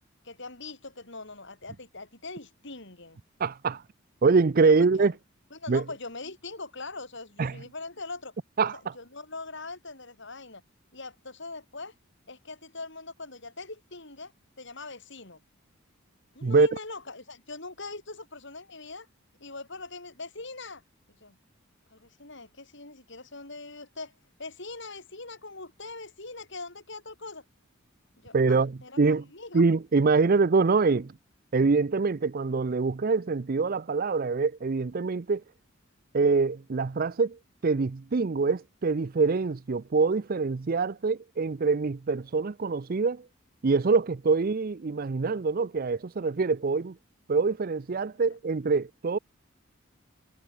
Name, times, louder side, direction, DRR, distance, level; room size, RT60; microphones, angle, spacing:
voice 1, 0.2-3.2 4.7-5.1 5.5-8.3 8.9-10.6 10.9-11.9 12.3-14.3 14.6-15.4 16.3-19.1 19.4-20.8 21.2-21.4 21.9-24.1 24.4-27.4 28.2-29.6 48.1-48.2, left 3 dB, 60° left, 6.6 m, -42 dB
voice 2, 3.4-3.8 4.2-5.1 5.7-5.8 7.4-7.6 8.6-8.8 16.4-16.7 28.3-29.2 29.5-31.1 31.5-35.4 36.1-43.3 43.6-46.9 47.3-49.2, right 4 dB, 45° right, 0.5 m, -24 dB
head